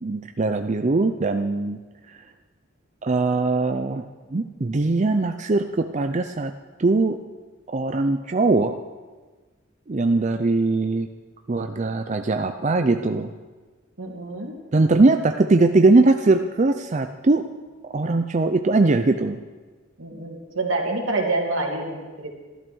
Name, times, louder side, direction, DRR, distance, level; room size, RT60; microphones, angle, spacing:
voice 1, 0.0-1.8 3.0-4.0 4.3-6.5 6.8-7.2 7.7-8.8 9.9-11.1 11.5-13.3 14.7-17.4 17.9-19.4, right 3 dB, 35° right, 6 dB, 0.5 m, -20 dB
voice 2, 14.0-14.5 20.0-22.3, right 2 dB, 80° right, 0 dB, 2.6 m, -27 dB
13.5 x 12.5 x 6.2 m, 1.3 s
head